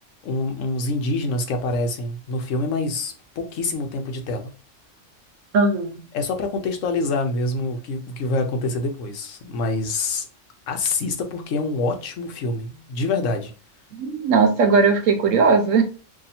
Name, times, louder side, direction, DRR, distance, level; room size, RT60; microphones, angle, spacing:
voice 1, 0.2-4.5 6.1-10.3 10.7-13.5, left 2 dB, 80° left, 1.1 m, -26 dB
voice 2, 5.5-6.0 13.9-15.8, right 4 dB, 80° right, 1.0 m, -18 dB
2.8 x 2.7 x 4.1 m
omnidirectional pair, 1.3 m